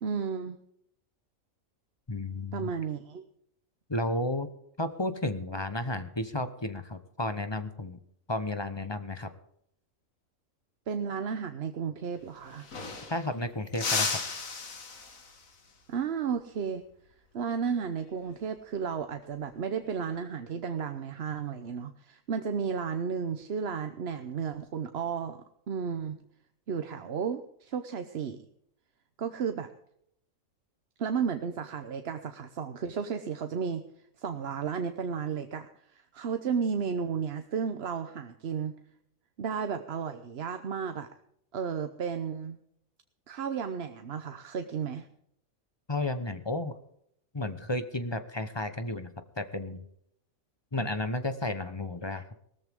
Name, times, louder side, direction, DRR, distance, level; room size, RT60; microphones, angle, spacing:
voice 1, 0.0-0.6 2.5-3.3 10.9-12.7 15.9-16.8 17.3-26.2 26.7-28.5 29.2-29.7 31.0-33.8 34.2-38.8 39.4-41.1 41.5-42.6 43.3-45.1, right 6 dB, 55° right, 8 dB, 1.0 m, -33 dB
voice 2, 2.1-2.7 3.9-4.5 4.8-8.0 8.3-9.3 13.1-14.2 45.9-46.7 47.3-49.8 50.7-52.2, left 1 dB, 20° left, 10 dB, 1.0 m, -32 dB
sound 1, 12.1-12.2 12.4-13.3 13.7-15.5 18.0-18.3 19.7-20.2, left 4 dB, 75° left, 2.2 m, -34 dB
18.5 x 14.0 x 3.6 m, 0.72 s
omnidirectional pair, 1.4 m